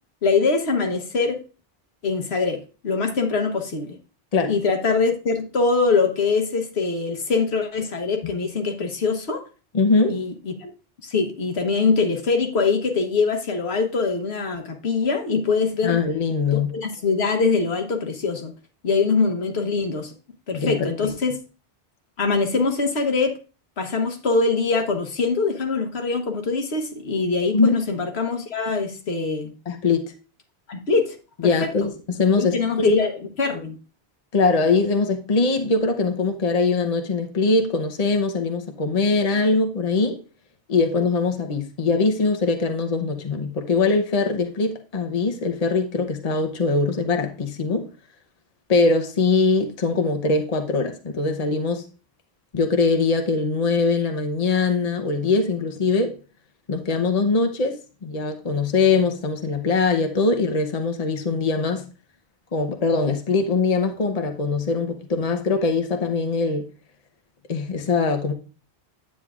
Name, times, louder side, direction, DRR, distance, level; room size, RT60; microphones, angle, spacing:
voice 1, 0.2-1.4 2.0-4.0 4.5-9.4 10.0-10.7 11.0-16.0 16.5-18.5 18.8-20.1 20.5-21.4 22.2-23.3 23.8-29.5 30.7-31.1 31.4-31.7 32.4-33.8, left 4 dB, 75° left, 1.4 m, -23 dB
voice 2, 9.7-10.2 15.8-16.7 20.5-21.1 27.5-27.7 29.7-30.0 31.4-33.0 34.3-40.2 40.7-47.9 48.7-51.8 52.5-56.2 56.7-61.8 62.5-66.7 67.5-68.3, left 4 dB, 40° left, 0.9 m, -22 dB
9.5 x 8.5 x 2.4 m
omnidirectional pair, 1.1 m